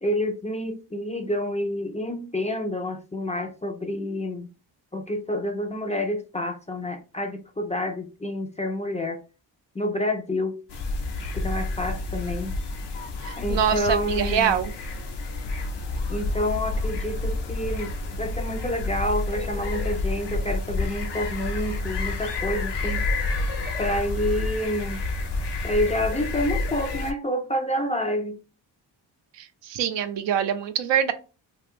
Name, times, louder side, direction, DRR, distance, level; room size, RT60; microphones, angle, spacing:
voice 1, 0.0-4.5 4.9-9.2 9.8-10.6 11.3-12.5 13.4-14.6 16.1-23.1 23.8-25.0 25.6-28.4, left 1 dB, 15° left, 0.5 m, -28 dB
sound 1, 10.7-27.1, left 2 dB, 60° left, 0.7 m, -29 dB
voice 2, 13.2-14.7 29.4-31.1, right 8 dB, 65° right, 0.6 m, -25 dB
2.4 x 2.3 x 3.4 m
supercardioid pair, 45°, 48 cm